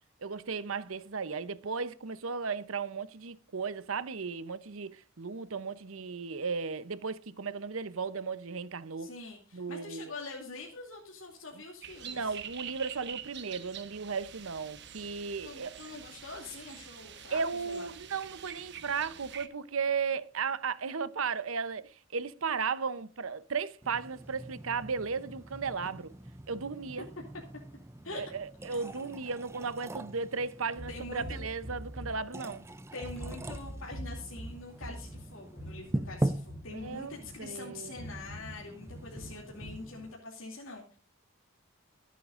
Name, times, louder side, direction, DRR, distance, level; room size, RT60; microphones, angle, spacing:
voice 1, 0.2-9.1 9.5-10.1 12.0-15.8 17.3-26.1 26.5-27.1 28.1-32.7 36.7-37.9, right 5 dB, 75° right, 0.8 m, -35 dB
voice 2, 9.0-12.4 15.4-17.9 28.0-28.2 28.7-29.1 30.9-31.4 32.9-41.0, left 3 dB, 70° left, 2.6 m, -44 dB
sound 1, 11.8-19.5, right 9 dB, 55° right, 1.1 m, -46 dB
sound 2, 23.8-40.1, right 1 dB, 10° right, 0.5 m, -42 dB
sound 3, 30.8-32.7 33.0-37.5 38.0-39.9, equal, 5° left, 6.3 m, -44 dB
24.0 x 8.4 x 2.5 m
head